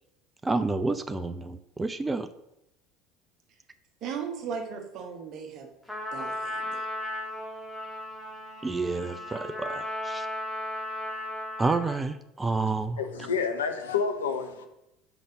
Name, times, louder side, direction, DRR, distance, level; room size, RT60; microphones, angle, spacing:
voice 1, 0.4-2.3 8.6-10.3 11.6-13.0, right 3 dB, 15° right, 11 dB, 0.4 m, -29 dB
voice 2, 4.0-5.7 6.1-6.9, right 6 dB, 45° right, 2 dB, 1.2 m, -37 dB
Trumpet, 5.9-12.1, left 1 dB, ahead, 1.6 m, -35 dB
voice 3, 13.0-14.7, left 6 dB, 75° left, 6 dB, 0.7 m, -29 dB
5.1 x 4.0 x 5.8 m, 0.86 s
figure-of-eight pair, 65°, 0 cm